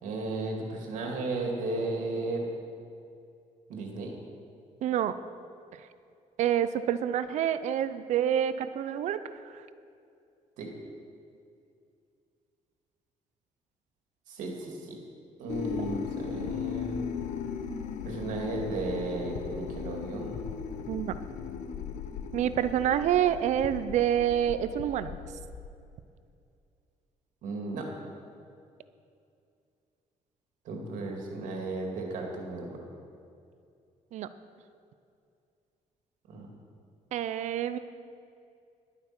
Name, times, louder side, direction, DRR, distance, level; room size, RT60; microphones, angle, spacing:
voice 1, 0.0-2.4 3.7-4.1 10.6-10.7 14.3-14.9 15.4-17.1 18.0-20.4 27.4-27.8 30.6-32.8 36.3-36.6, right 3 dB, 90° right, 1 dB, 2.3 m, -35 dB
voice 2, 4.8-5.1 6.4-9.6 20.9-21.2 22.3-25.2 34.1-34.3 37.1-37.8, right 10 dB, 65° right, 13 dB, 0.5 m, -27 dB
sound 1, 15.5-25.7, left 7 dB, 70° left, 0.7 m, -37 dB
11.5 x 9.3 x 6.0 m, 2.4 s
cardioid pair, 160°, 13 cm